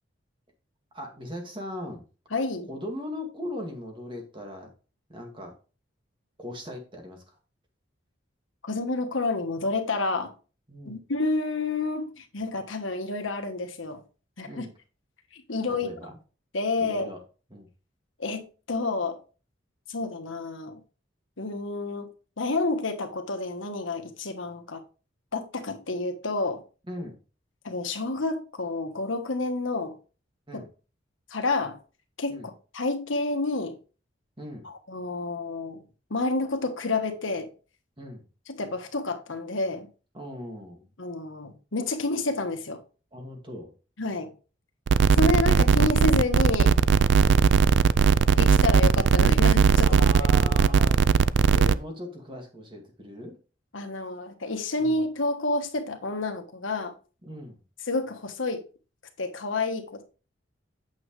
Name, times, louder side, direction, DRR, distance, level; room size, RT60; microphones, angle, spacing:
voice 1, 0.9-2.0 2.7-4.7 5.1-5.5 6.4-7.4 10.7-11.0 14.4-14.7 15.7-16.2 16.8-17.2 17.5-17.7 26.9-27.2 30.5-30.7 32.3-32.5 34.4-34.7 38.0-38.2 40.1-40.9 43.1-43.7 47.2-47.5 49.8-51.1 51.5-53.4 54.8-55.0 57.2-57.6, left 1 dB, 25° right, 2.1 m, -39 dB
voice 2, 2.3-2.7 8.6-10.3 10.8-14.0 14.4-14.7 15.3-15.9 16.5-17.1 18.2-19.2 19.9-20.8 21.4-22.1 22.4-24.8 25.3-26.6 27.6-30.0 30.5-30.6 31.3-31.8 32.2-33.8 34.6-35.8 36.1-37.5 38.5-39.9 41.0-42.8 44.0-44.3 45.1-46.8 48.3-50.6 53.7-56.9 57.9-58.6 59.2-60.0, left 3 dB, 85° left, 1.3 m, -29 dB
sound 1, 44.9-51.7, right 6 dB, 65° right, 0.4 m, -19 dB
8.8 x 6.4 x 3.2 m
head